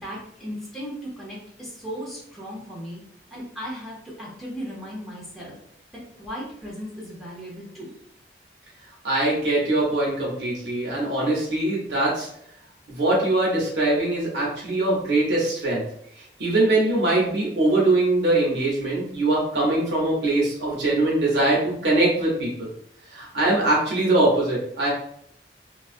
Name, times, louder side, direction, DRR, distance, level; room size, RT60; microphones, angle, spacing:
voice 1, 0.0-3.0 3.3-5.6 6.1-7.9, equal, ahead, -7 dB, 0.8 m, -36 dB
voice 2, 9.0-12.3 12.9-15.8 16.2-22.7 23.1-24.9, right 2 dB, 90° right, -4 dB, 0.8 m, -22 dB
2.5 x 2.3 x 2.4 m, 0.67 s
head